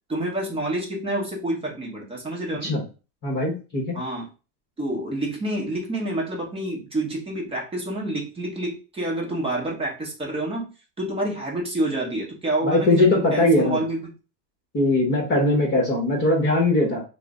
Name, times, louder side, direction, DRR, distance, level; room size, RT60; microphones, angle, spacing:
voice 1, 0.1-2.7 3.9-4.2 4.8-10.7 11.0-14.1, right 1 dB, 10° right, -2 dB, 0.8 m, -28 dB
voice 2, 3.2-4.0 12.6-13.8 14.7-17.0, left 2 dB, 25° left, -2 dB, 0.9 m, -20 dB
3.1 x 2.1 x 3.5 m, 0.33 s
supercardioid pair, 130°, 48 cm